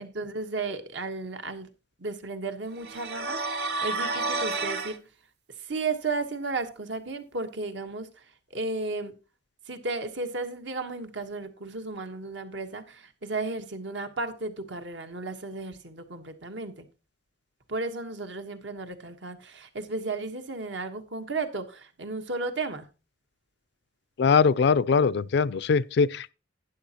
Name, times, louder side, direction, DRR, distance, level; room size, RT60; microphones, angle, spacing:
voice 1, 0.0-1.7 2.0-5.0 5.6-9.1 9.7-16.9 17.7-22.9, right 3 dB, 80° right, 1.3 m, -34 dB
sound 1, 2.8-5.0, right 3 dB, 60° right, 1.0 m, -30 dB
voice 2, 24.2-26.3, left 5 dB, 65° left, 0.4 m, -22 dB
11.5 x 9.9 x 2.9 m
head